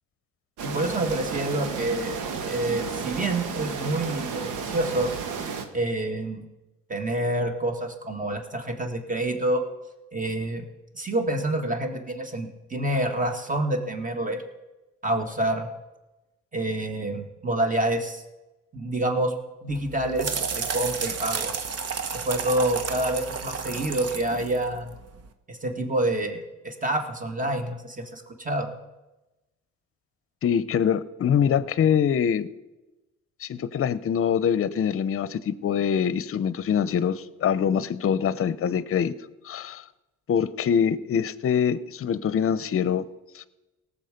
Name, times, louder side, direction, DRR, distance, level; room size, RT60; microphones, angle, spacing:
voice 1, 0.6-5.2 5.7-6.5 6.9-9.6 10.1-10.6 10.9-14.4 15.0-15.7 16.5-18.2 18.7-19.3 19.6-21.5 22.1-24.9 25.5-28.7, right 1 dB, 25° right, 5 dB, 1.9 m, -27 dB
sound 1, 0.6-5.7, right 5 dB, 90° right, 1.3 m, -32 dB
sound 2, 19.7-25.3, right 6 dB, 55° right, 1.1 m, -32 dB
voice 2, 30.4-32.5 33.4-39.2 39.4-39.8 40.3-43.0 43.3-43.5, left 8 dB, 50° left, 17 dB, 0.7 m, -24 dB
18.0 x 7.2 x 5.2 m, 1.1 s
cardioid pair, 90°, 30 cm